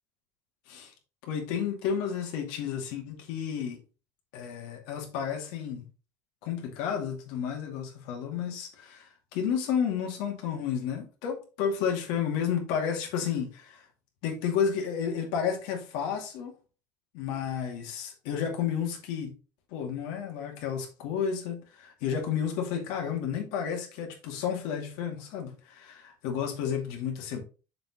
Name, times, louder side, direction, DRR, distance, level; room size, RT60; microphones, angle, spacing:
voice 1, 1.2-3.8 4.3-5.8 6.4-13.9 14.2-16.5 17.1-19.3 19.7-27.4, left 7 dB, 75° left, 2.3 m, -31 dB
6.6 x 6.0 x 3.1 m
cardioid pair, 165°, 8 cm